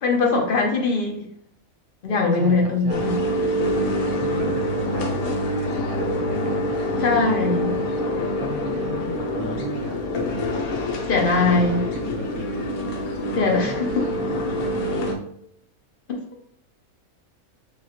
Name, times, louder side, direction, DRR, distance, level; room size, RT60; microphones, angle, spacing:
voice 1, 0.0-1.3 2.0-3.2 7.0-7.7 11.1-11.8 13.3-13.9 16.1-16.2, left 3 dB, 50° left, 1 dB, 0.6 m, -21 dB
voice 2, 2.1-3.2 4.1-8.1 8.4-10.0 11.4-12.7 13.4-15.2, right 1 dB, 85° right, 2 dB, 1.2 m, -37 dB
sound 1, 2.9-15.1, left 1 dB, 80° left, 1.1 m, -26 dB
4.8 x 2.3 x 2.9 m, 0.72 s
omnidirectional pair, 1.5 m